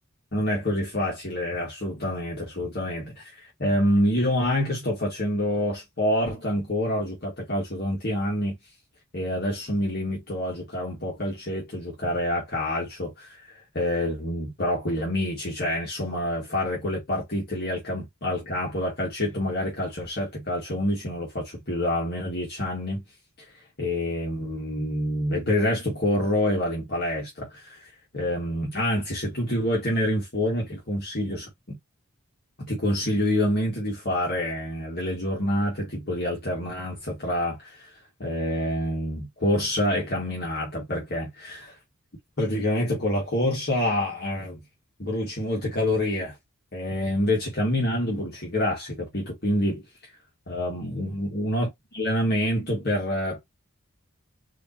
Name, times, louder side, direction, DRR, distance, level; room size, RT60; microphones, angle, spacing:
voice 1, 0.3-8.6 9.1-23.0 23.8-31.8 32.6-37.9 38.2-41.7 42.4-44.6 45.0-46.3 46.7-49.8 50.5-53.4, left 1 dB, 45° left, 1.7 m, -27 dB
4.9 x 2.8 x 2.8 m
head